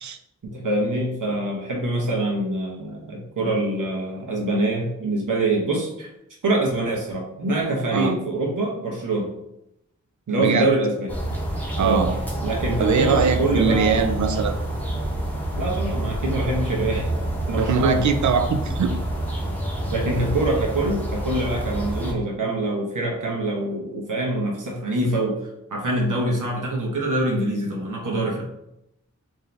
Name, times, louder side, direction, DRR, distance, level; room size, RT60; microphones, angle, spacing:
voice 1, 0.4-6.1 6.4-9.3 10.3-11.1 11.8-12.1 12.4-13.9 15.5-17.1 17.5-18.1 19.9-25.4 25.7-28.4, right 2 dB, 85° right, -1 dB, 1.0 m, -24 dB
voice 2, 10.4-10.7 11.8-12.1 12.8-14.6 17.5-18.9, right 6 dB, 65° right, 6 dB, 0.5 m, -22 dB
sound 1, 11.1-22.1, right 1 dB, 5° left, 0.8 m, -27 dB
3.6 x 2.7 x 3.3 m, 0.82 s
wide cardioid pair, 85°, 31 cm